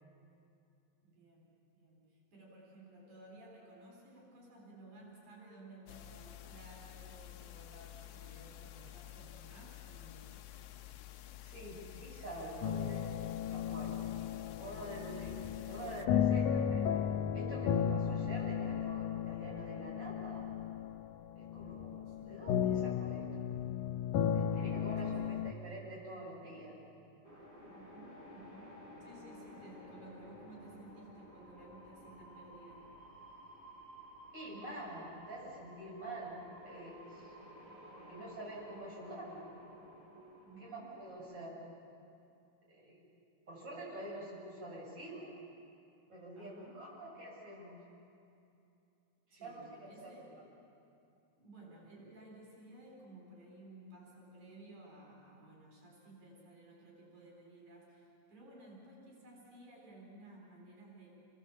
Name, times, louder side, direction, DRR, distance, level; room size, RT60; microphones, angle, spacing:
voice 1, 1.0-10.3 14.3-14.5 15.1-15.5 22.1-22.3 25.0-25.4 27.7-32.9 40.4-41.4 46.3-46.8 49.3-50.3 51.4-61.1, right 2 dB, 85° right, -3 dB, 5.9 m, -56 dB
sound 1, 5.9-16.1, left 13 dB, 70° left, 1.5 m, -51 dB
voice 2, 11.4-13.2 13.5-14.1 14.6-15.3 15.6-16.9 17.3-20.5 21.4-23.5 24.3-26.8 34.3-37.3 37.9-39.5 40.6-41.6 42.7-43.0 43.5-45.3 46.1-47.8 49.3-50.1, right 1 dB, 35° right, -5 dB, 8.0 m, -47 dB
sound 2, 12.6-25.5, left 8 dB, 90° left, 2.2 m, -35 dB
sound 3, 27.2-41.1, equal, 10° right, 6.2 m, -54 dB
28.5 x 21.5 x 7.4 m, 2.6 s
omnidirectional pair, 3.4 m